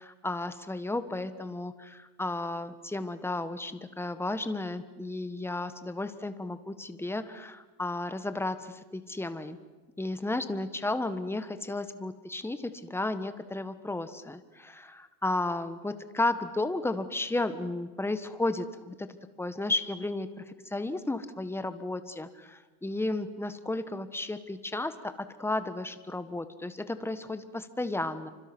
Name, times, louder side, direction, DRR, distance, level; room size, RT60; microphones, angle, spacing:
voice 1, 0.0-9.6 10.0-19.1 19.4-28.3, left 2 dB, 5° left, 11 dB, 1.4 m, -33 dB
29.5 x 25.5 x 6.2 m, 1.3 s
supercardioid pair, 125°, 47 cm